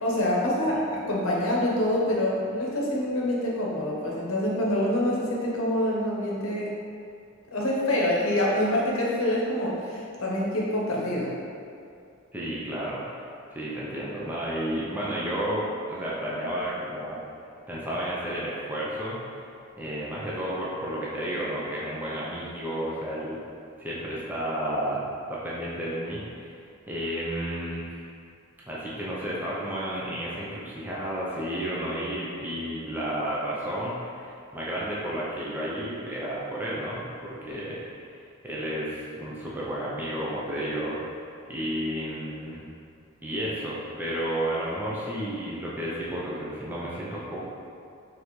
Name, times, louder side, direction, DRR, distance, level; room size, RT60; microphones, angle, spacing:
voice 1, 0.0-0.8 1.1-6.7 7.5-11.3, left 1 dB, 70° left, -4 dB, 0.8 m, -26 dB
voice 2, 12.3-13.2 13.5-17.2 17.7-23.4 23.8-28.1 28.7-37.8 38.4-41.0 41.5-42.6 43.2-47.4, right 1 dB, 10° right, -7 dB, 0.5 m, -32 dB
4.1 x 3.3 x 3.1 m, 2.4 s
head